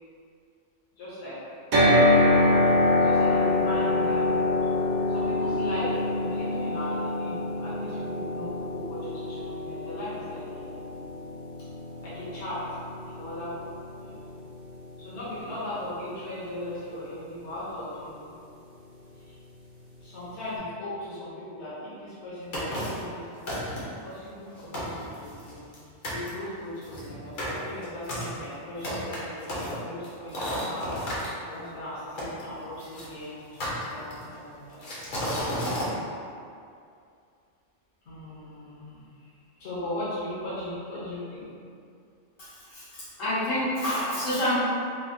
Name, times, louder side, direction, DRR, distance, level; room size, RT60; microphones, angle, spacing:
voice 1, 1.0-1.4 3.0-4.6 5.1-10.8 12.0-12.6 13.1-14.3 15.0-18.3 19.2-19.4 20.0-23.6 24.0-25.6 26.1-35.3 38.1-39.3 39.6-41.5, left 1 dB, 70° left, -11 dB, 1.0 m, -38 dB
sound 1, 1.7-15.8, left 2 dB, 55° right, 0.6 m, -26 dB
sound 2, 22.5-23.1 23.5-24.0 24.5-24.6 24.7-25.8 26.0-26.3 26.8-31.3 32.2-33.1 33.6-34.3 34.8-35.9, equal, 50° left, 0.7 m, -32 dB
voice 2, 42.4-44.6, left 1 dB, 85° left, -12 dB, 1.5 m, -28 dB
3.2 x 2.1 x 2.5 m, 2.4 s
omnidirectional pair, 1.3 m